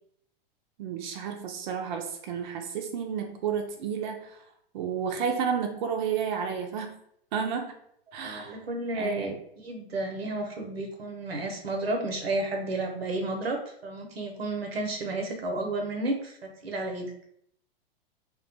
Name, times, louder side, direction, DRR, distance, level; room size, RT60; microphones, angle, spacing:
voice 1, 0.8-4.4 4.7-7.0 7.3-7.7 8.1-8.6 8.9-9.3, right 7 dB, 50° right, 3 dB, 0.4 m, -31 dB
voice 2, 8.2-17.1, right 2 dB, 90° right, 3 dB, 0.7 m, -32 dB
2.3 x 2.2 x 2.6 m, 0.70 s
hypercardioid pair, 110°, 30 cm